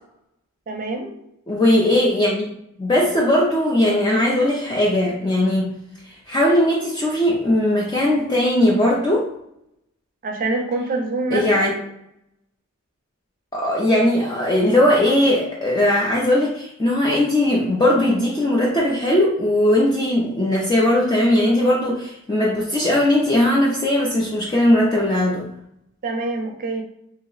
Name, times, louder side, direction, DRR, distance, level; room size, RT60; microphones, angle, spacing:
voice 1, 0.7-1.1 10.2-11.7 26.0-26.8, right 3 dB, 40° right, 3 dB, 0.5 m, -25 dB
voice 2, 1.5-2.5 2.8-5.7 6.3-9.3 11.3-11.7 13.5-25.5, left 1 dB, 20° left, -4 dB, 0.4 m, -19 dB
2.7 x 2.0 x 3.8 m, 0.78 s
head